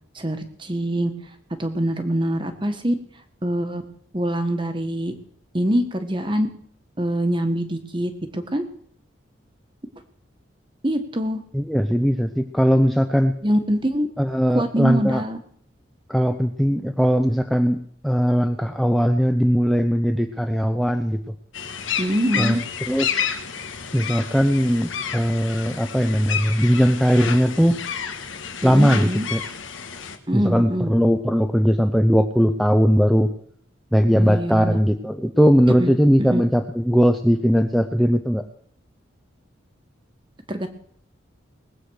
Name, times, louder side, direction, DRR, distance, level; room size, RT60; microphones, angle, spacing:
voice 1, 0.1-1.1 1.6-2.9 3.4-3.8 4.1-5.1 5.5-6.5 7.0-8.6 10.8-11.4 13.4-14.1 14.5-15.4 22.0-22.6 28.6-29.3 30.3-30.9 34.1-34.8 35.8-35.9 36.2-36.4 40.5-40.7, right 1 dB, 25° right, 8 dB, 1.5 m, -24 dB
voice 2, 11.5-13.3 14.2-15.2 16.1-21.2 22.4-22.6 22.9-23.3 23.9-27.8 28.6-29.4 30.3-33.3 33.9-38.4, equal, ahead, 6 dB, 0.6 m, -19 dB
sound 1, 21.5-30.2, left 7 dB, 85° left, 1.6 m, -30 dB
20.0 x 8.4 x 6.4 m, 0.63 s
head